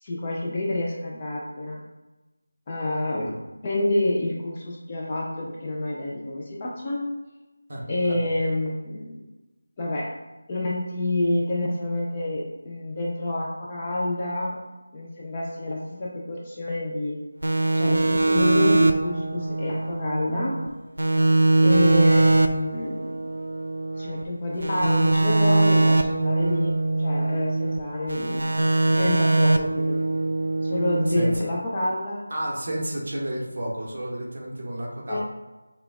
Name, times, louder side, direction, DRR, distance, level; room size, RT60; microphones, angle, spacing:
voice 1, 0.0-1.8 2.7-7.1 7.9-9.2 9.8-10.1 10.5-14.6 14.9-17.2 17.7-20.6 21.6-23.1 24.0-26.7 27.0-28.4 28.9-30.0 30.6-32.2 35.1-35.2, left 1 dB, 15° left, -4 dB, 0.4 m, -28 dB
voice 2, 7.7-8.2 31.1-31.4 32.3-35.2, right 1 dB, 35° right, -3 dB, 1.0 m, -31 dB
sound 1, 17.4-20.7 21.0-24.2 24.6-27.8 28.1-31.3, right 2 dB, 80° right, 0.5 m, -22 dB
5.8 x 2.2 x 3.4 m, 1.1 s
figure-of-eight pair, 180°, 0 cm